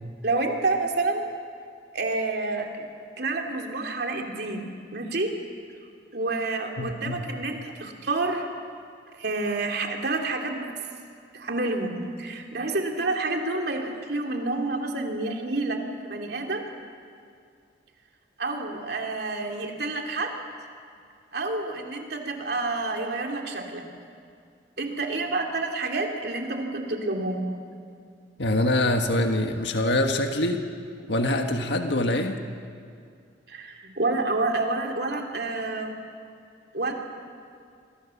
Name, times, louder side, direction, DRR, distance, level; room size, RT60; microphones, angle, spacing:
voice 1, 0.2-1.3 1.9-2.9 3.2-5.3 6.1-8.5 9.1-10.7 11.3-15.8 16.0-16.7 18.4-20.3 21.3-23.8 24.8-27.4 31.0-31.1 33.5-35.9 36.7-36.9, right 2 dB, 60° right, 2 dB, 3.0 m, -29 dB
voice 2, 6.8-7.2 28.4-30.6 31.1-32.3, left 1 dB, 70° left, 4 dB, 1.6 m, -24 dB
29.0 x 23.5 x 7.2 m, 2.3 s
head